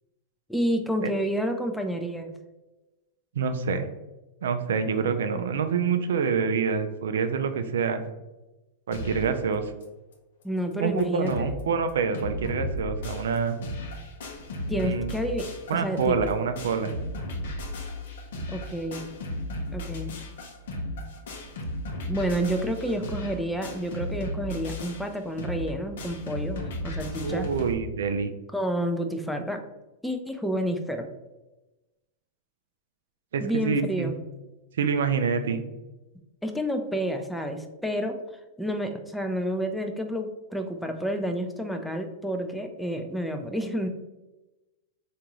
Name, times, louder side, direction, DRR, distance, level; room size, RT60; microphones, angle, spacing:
voice 1, 0.5-2.3 10.4-11.5 14.7-15.5 15.8-16.3 18.5-19.0 19.7-20.1 22.1-27.5 28.5-29.6 30.0-31.1 33.4-34.1 36.4-38.2 38.6-43.9, equal, 5° left, 5 dB, 0.4 m, -29 dB
voice 2, 3.4-3.9 4.4-8.0 8.9-9.7 10.8-13.6 14.8-15.1 15.7-16.9 22.9-23.0 27.2-28.3 33.3-34.1 34.8-35.6, right 5 dB, 80° right, 8 dB, 0.3 m, -26 dB
sound 1, 8.9-9.4 9.8-9.9 10.1-10.2 10.7-10.8 11.0-11.6 11.9-27.7, left 1 dB, 75° left, 0.6 m, -35 dB
3.5 x 2.5 x 3.0 m, 1.0 s
hypercardioid pair, 115°, 0 cm